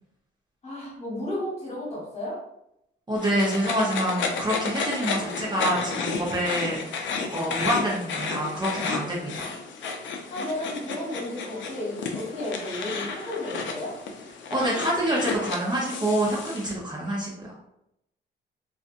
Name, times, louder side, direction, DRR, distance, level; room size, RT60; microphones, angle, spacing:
voice 1, 0.6-2.4 10.3-13.9, left 1 dB, 35° left, -5 dB, 1.4 m, -33 dB
voice 2, 3.1-7.1 7.3-9.5 14.5-17.5, right 1 dB, 20° right, -5 dB, 0.7 m, -27 dB
sound 1, 3.2-16.7, left 4 dB, 70° left, 0.5 m, -32 dB
2.5 x 2.4 x 2.5 m, 0.81 s
cardioid pair, 90°, 20 cm